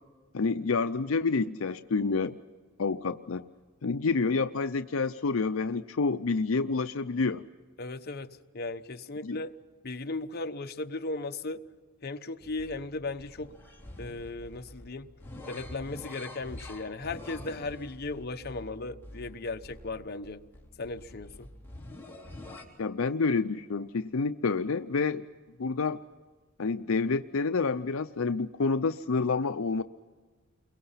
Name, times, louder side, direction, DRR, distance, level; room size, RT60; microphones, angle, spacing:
voice 1, 0.3-2.4 2.8-3.5 3.8-7.4 9.2-9.4 22.8-25.2 25.6-26.0 26.6-29.8, left 4 dB, 75° left, 10 dB, 0.6 m, -28 dB
voice 2, 7.8-9.5 9.8-11.6 12.0-13.5 14.0-15.1 15.5-20.4 20.8-21.5, left 3 dB, 50° left, 7 dB, 1.0 m, -36 dB
sound 1, 12.4-22.6, left 1 dB, 10° left, 3.6 m, -46 dB
29.5 x 23.0 x 5.7 m, 1.4 s
head